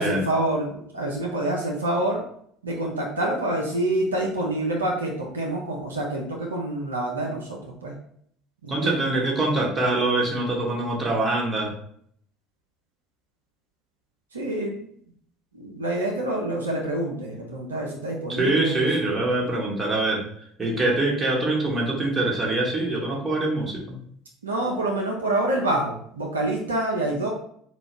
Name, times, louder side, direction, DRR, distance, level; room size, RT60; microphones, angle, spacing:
voice 1, 0.0-2.2 2.6-7.9 8.6-9.0 14.3-14.9 15.5-19.1 24.4-27.3, right 1 dB, 80° right, -1 dB, 0.5 m, -27 dB
voice 2, 8.7-11.7 18.3-20.2 20.6-24.0, right 2 dB, 25° right, -2 dB, 1.1 m, -24 dB
3.9 x 2.3 x 3.4 m, 0.65 s
figure-of-eight pair, 65°, 0 cm